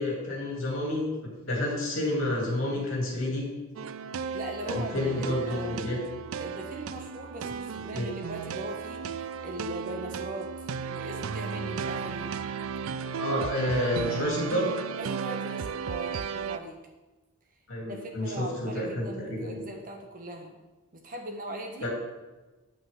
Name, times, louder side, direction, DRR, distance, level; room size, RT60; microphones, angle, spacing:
voice 1, 0.0-3.5 4.6-6.0 7.9-8.1 13.2-14.8 17.7-19.6 21.8-21.9, left 1 dB, 60° left, -3 dB, 3.1 m, -30 dB
sound 1, 3.8-16.6, right 6 dB, 70° right, 0.4 m, -35 dB
voice 2, 4.3-6.0 6.4-12.4 15.0-16.8 17.8-20.6 21.0-21.9, right 1 dB, 40° right, 3 dB, 1.1 m, -40 dB
8.8 x 8.0 x 3.7 m, 1.1 s
head